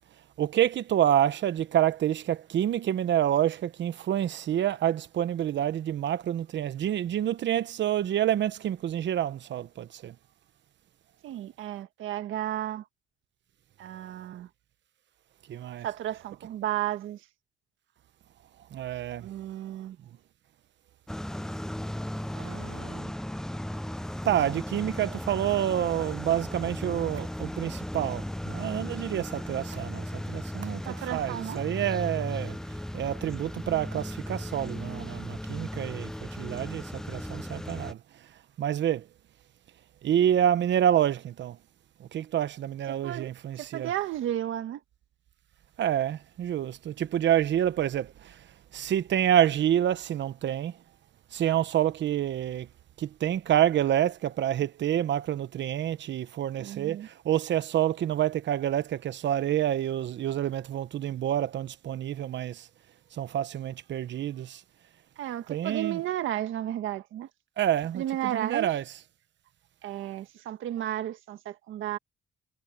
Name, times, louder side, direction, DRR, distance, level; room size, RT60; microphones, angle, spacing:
voice 1, 0.4-10.1 15.5-15.9 18.7-19.3 24.2-32.6 32.9-38.0 38.6-39.1 40.0-41.6 42.0-43.9 45.8-48.4 48.7-50.8 51.3-52.7 53.0-62.7 63.1-64.6 65.5-66.0 67.6-68.0 68.3-68.8, right 11 dB, 65° right, 1.1 m, -28 dB
voice 2, 11.2-12.9 13.8-14.5 15.8-17.3 19.2-20.0 22.3-23.1 30.8-31.6 42.9-43.3 43.6-44.8 56.6-57.1 65.2-67.3 67.9-68.7 69.8-72.0, right 12 dB, 80° right, 1.7 m, -33 dB
sound 1, 21.1-37.9, left 1 dB, 5° left, 0.6 m, -36 dB
cardioid pair, 90°, 20 cm